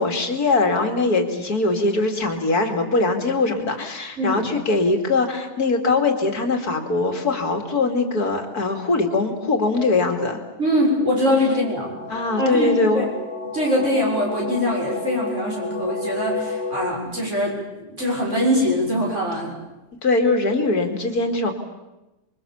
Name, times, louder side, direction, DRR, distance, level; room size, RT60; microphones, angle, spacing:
voice 1, 0.0-10.4 12.1-13.1 20.0-21.5, left 3 dB, 65° left, 5 dB, 3.1 m, -21 dB
voice 2, 4.2-4.5 10.6-11.9 12.4-13.1 13.4-19.5, equal, 45° right, -3 dB, 7.0 m, -23 dB
sound 1, 10.7-16.9, left 3 dB, 40° left, 1.7 m, -32 dB
27.5 x 23.0 x 7.2 m, 1.0 s
omnidirectional pair, 1.8 m